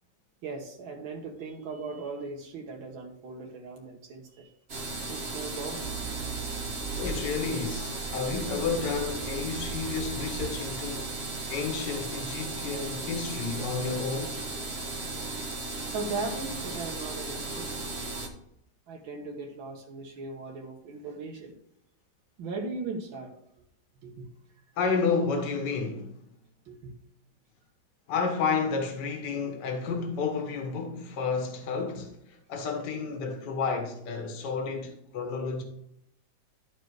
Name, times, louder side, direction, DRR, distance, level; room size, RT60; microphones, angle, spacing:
voice 1, 0.4-4.5 5.1-5.9 15.9-17.7 18.9-21.5 22.4-23.3 24.0-24.3 26.7-26.9 31.7-31.8, right 3 dB, 90° right, 1.9 m, -38 dB
sound 1, 4.7-18.3, right 2 dB, 35° right, 1.4 m, -36 dB
Accelerating revving vroom, 5.8-11.3, right 7 dB, 65° right, 0.7 m, -40 dB
voice 2, 7.0-11.2 11.5-14.4 24.8-26.1 28.1-35.6, left 5 dB, 65° left, 1.8 m, -31 dB
12.5 x 4.5 x 4.7 m
omnidirectional pair, 2.1 m